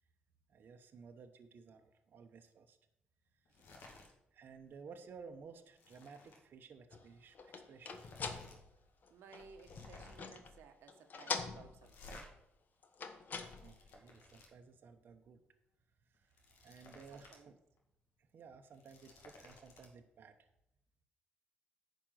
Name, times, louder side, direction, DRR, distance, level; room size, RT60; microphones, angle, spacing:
voice 1, 0.5-2.8 4.3-8.1 13.6-15.4 16.2-16.3 16.6-17.6 18.2-20.5, right 5 dB, 55° right, 5 dB, 0.9 m, -56 dB
sound 1, 3.5-4.1 4.5-4.7 5.1-6.4 7.4-7.5 7.8-8.6 8.9-9.0 9.5-10.4 11.8-12.3 13.1-14.5 16.1-17.4 17.8-17.9 18.6-19.9, left 2 dB, 85° left, 2.1 m, -57 dB
sound 2, 6.9-10.6 10.9-12.1 12.8-13.9, left 5 dB, 50° left, 1.2 m, -44 dB
voice 2, 9.1-12.2 16.8-17.6, right 6 dB, 85° right, 6 dB, 1.1 m, -59 dB
10.0 x 5.3 x 7.6 m, 0.84 s
cardioid pair, 110°, 4 cm